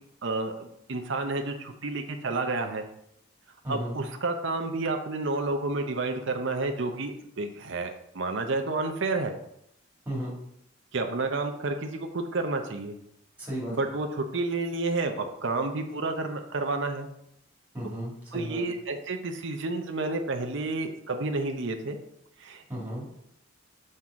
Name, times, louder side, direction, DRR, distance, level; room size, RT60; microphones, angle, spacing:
voice 1, 0.2-2.8 3.7-9.3 10.9-12.9 13.7-17.1 18.3-22.0 22.4-22.6, right 3 dB, 55° right, 5 dB, 0.7 m, -30 dB
voice 2, 3.6-4.0 10.1-10.4 13.4-13.7 17.7-18.6 22.7-23.1, equal, 10° right, -5 dB, 2.2 m, -34 dB
6.1 x 5.4 x 3.7 m, 0.75 s
head